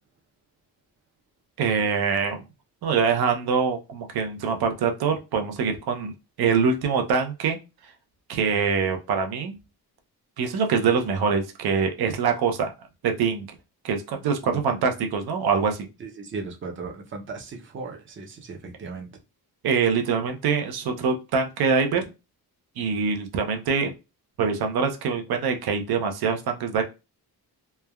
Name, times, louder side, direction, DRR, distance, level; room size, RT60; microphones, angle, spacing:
voice 1, 1.6-2.4 2.8-6.1 6.4-7.6 8.3-9.5 10.4-12.7 13.0-13.5 13.8-15.9 19.6-22.0 22.8-23.9 24.4-26.8, right 5 dB, 70° right, 0.6 m, -24 dB
voice 2, 16.0-19.1, right 4 dB, 30° right, 0.6 m, -37 dB
3.2 x 2.2 x 2.2 m
wide cardioid pair, 135°, 38 cm